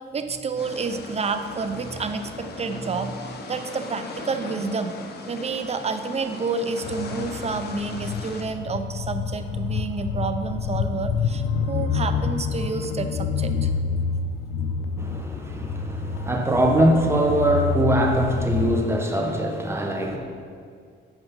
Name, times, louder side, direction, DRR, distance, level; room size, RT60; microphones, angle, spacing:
voice 1, 0.1-5.0 5.3-13.7 14.0-14.1, right 4 dB, 30° right, 9 dB, 0.6 m, -29 dB
sound 1, 0.6-8.4, left 3 dB, 55° left, 1.0 m, -38 dB
sound 2, 6.8-18.8, left 5 dB, 85° left, 0.4 m, -28 dB
voice 2, 15.0-20.2, right 1 dB, 10° right, 1 dB, 1.2 m, -22 dB
8.1 x 5.3 x 5.4 m, 2.2 s
cardioid pair, 90°, 20 cm